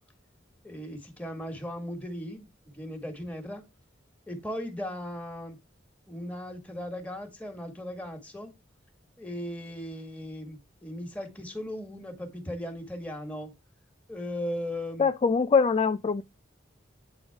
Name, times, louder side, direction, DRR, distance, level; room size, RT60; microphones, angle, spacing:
voice 1, 0.6-2.5 2.7-3.6 4.3-5.6 6.1-8.5 9.2-13.5 14.1-15.1, left 1 dB, 10° left, 1.7 m, -37 dB
voice 2, 15.0-16.2, left 5 dB, 30° left, 0.3 m, -23 dB
8.6 x 3.9 x 3.5 m
head